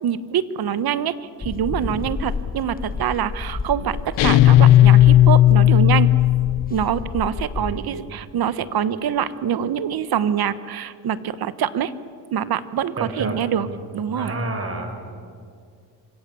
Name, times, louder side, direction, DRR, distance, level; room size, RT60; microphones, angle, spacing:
voice 1, 0.0-6.1 6.7-11.9 12.3-13.7 13.9-14.3, right 9 dB, 55° right, 14 dB, 1.3 m, -25 dB
sound 1, 1.4-7.8, left 4 dB, 20° left, 1.1 m, -30 dB
sound 2, 4.2-6.7, left 13 dB, 85° left, 0.9 m, -13 dB
voice 2, 7.6-7.9 13.0-13.4 13.6-13.8 14.1-15.0, right 2 dB, 30° right, 5 dB, 5.6 m, -30 dB
27.5 x 25.0 x 7.1 m, 2.2 s
cardioid pair, 105°, 43 cm